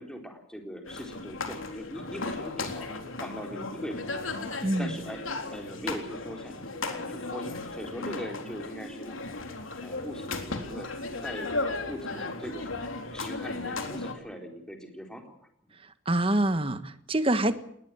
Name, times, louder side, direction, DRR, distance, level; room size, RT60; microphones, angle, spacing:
voice 1, 0.0-4.2 4.8-9.2 9.8-11.5 11.9-15.4, equal, 5° left, 3 dB, 4.1 m, -41 dB
sound 1, 0.9-14.1, left 3 dB, 90° left, 3.8 m, -35 dB
voice 2, 16.0-17.5, right 1 dB, 25° right, 11 dB, 1.5 m, -25 dB
20.5 x 19.5 x 7.8 m, 0.70 s
head